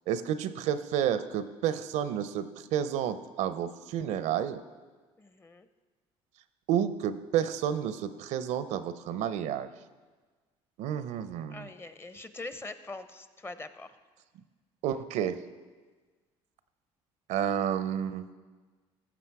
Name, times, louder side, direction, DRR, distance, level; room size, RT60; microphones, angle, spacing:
voice 1, 0.1-4.6 6.7-9.7 10.8-11.7 14.8-15.4 17.3-18.3, right 9 dB, 75° right, 13 dB, 0.6 m, -30 dB
voice 2, 5.2-5.7 11.5-13.9, left 2 dB, 20° left, 11 dB, 0.7 m, -43 dB
15.0 x 6.0 x 4.7 m, 1.4 s
supercardioid pair, 85°, 12 cm